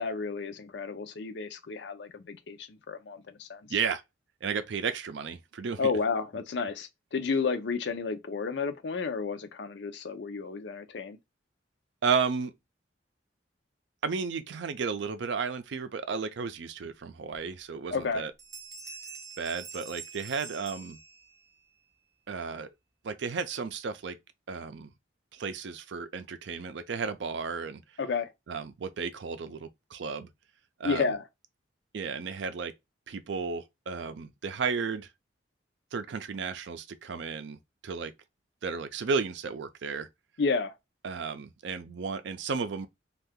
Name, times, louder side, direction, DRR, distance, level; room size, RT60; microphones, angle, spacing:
voice 1, 0.0-3.6 5.8-11.2 17.9-18.2 28.0-28.3 30.8-31.2 40.4-40.8, left 4 dB, 65° left, 0.5 m, -31 dB
voice 2, 3.7-4.0 4.4-5.9 12.0-12.5 14.0-18.3 19.4-21.0 22.3-22.7 23.0-24.2 24.5-24.9 25.3-27.8 28.5-30.3 30.8-31.1 31.9-32.7 33.1-35.1 35.9-37.6 37.8-38.1 38.6-40.1 41.0-42.9, right 5 dB, 70° right, 0.4 m, -33 dB
Bell, 17.3-17.4 17.9-18.1 18.4-21.5, right 5 dB, 20° right, 0.5 m, -45 dB
2.7 x 2.4 x 3.4 m
head